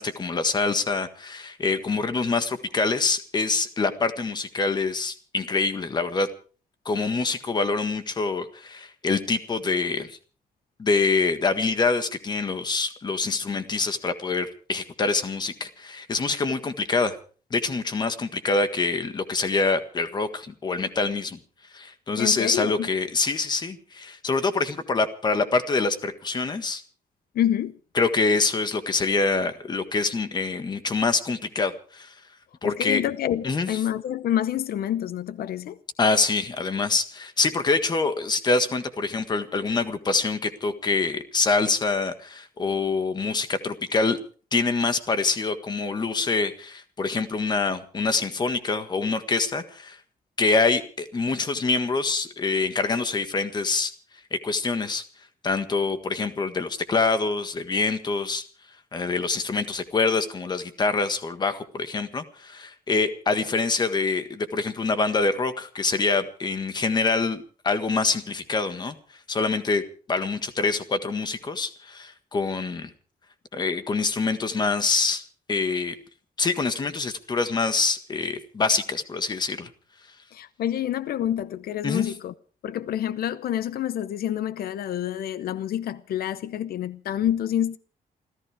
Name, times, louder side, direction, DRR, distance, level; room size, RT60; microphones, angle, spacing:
voice 1, 0.0-6.3 6.8-10.2 10.8-17.2 17.5-21.4 21.7-26.8 27.9-32.1 32.6-33.0 33.4-33.7 36.0-44.2 44.5-50.0 50.4-53.9 54.3-55.0 55.4-58.4 58.9-69.0 69.3-69.8 70.1-72.9 73.5-75.2 75.5-75.9 76.4-79.7 81.8-82.1, left 4 dB, 30° left, 1.6 m, -25 dB
voice 2, 22.2-22.9 27.3-27.8 32.6-35.8 80.3-82.3 82.6-87.8, left 11 dB, 85° left, 0.8 m, -27 dB
28.5 x 14.5 x 3.5 m
wide cardioid pair, 175°, 15 cm